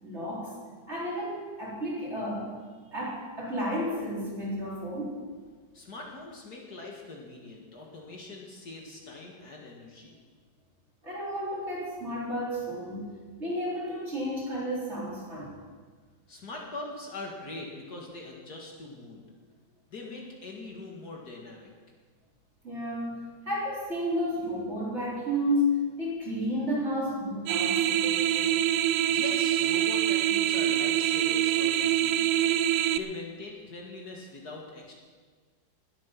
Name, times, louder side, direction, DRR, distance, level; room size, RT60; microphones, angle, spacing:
voice 1, 0.0-0.5 0.9-2.5 2.9-5.2 11.0-13.1 13.4-15.5 22.6-23.2 23.5-25.7 26.0-28.6, equal, 35° right, -6 dB, 4.4 m, -32 dB
voice 2, 5.7-10.2 16.3-19.2 19.9-21.7 28.9-32.6 32.9-34.9, left 2 dB, 55° left, -1 dB, 2.4 m, -42 dB
sound 1, 27.5-33.0, right 11 dB, 70° right, 0.9 m, -25 dB
19.5 x 9.0 x 6.0 m, 1.5 s
omnidirectional pair, 2.0 m